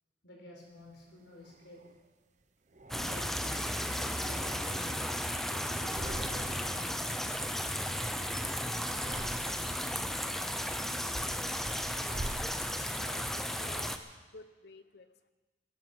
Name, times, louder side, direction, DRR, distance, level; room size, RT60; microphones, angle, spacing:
voice 1, 0.2-1.8 2.9-3.7 4.0-5.0 5.4-7.3 9.0-9.1, left 1 dB, 85° left, -1 dB, 4.6 m, -52 dB
sound 1, 0.8-2.1 2.7-3.7 4.1-5.4 5.7-6.8 7.1-8.5 8.9-9.9 10.4-13.1, right 1 dB, 40° right, 0.9 m, -47 dB
sound 2, 2.9-14.0, equal, ahead, 0.6 m, -34 dB
voice 2, 12.9-13.9 14.3-15.3, left 3 dB, 60° left, 11 dB, 0.9 m, -52 dB
18.5 x 11.0 x 6.2 m, 1.3 s
head